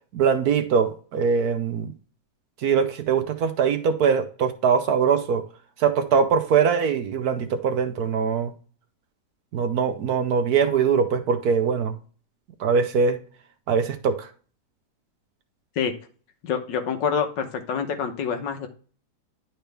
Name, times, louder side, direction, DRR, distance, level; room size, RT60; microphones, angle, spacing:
voice 1, 0.1-1.9 2.6-5.4 5.8-8.5 9.5-11.9 12.6-13.2 13.7-14.3, right 6 dB, 65° right, 1.1 m, -22 dB
voice 2, 16.4-18.7, left 6 dB, 75° left, 1.6 m, -26 dB
10.5 x 4.5 x 3.3 m
omnidirectional pair, 2.0 m